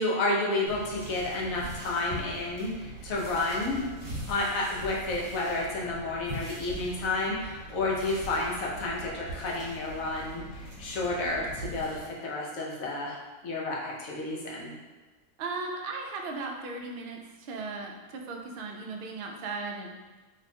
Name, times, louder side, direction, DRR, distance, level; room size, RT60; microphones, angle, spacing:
voice 1, 0.0-3.9 4.3-13.2 13.4-14.7, left 2 dB, 85° left, -3 dB, 1.2 m, -31 dB
sound 1, 0.7-12.1, right 1 dB, 40° right, 1.3 m, -42 dB
voice 2, 15.4-20.0, right 3 dB, 65° right, 1 dB, 0.5 m, -37 dB
3.0 x 2.2 x 4.2 m, 1.3 s
omnidirectional pair, 1.4 m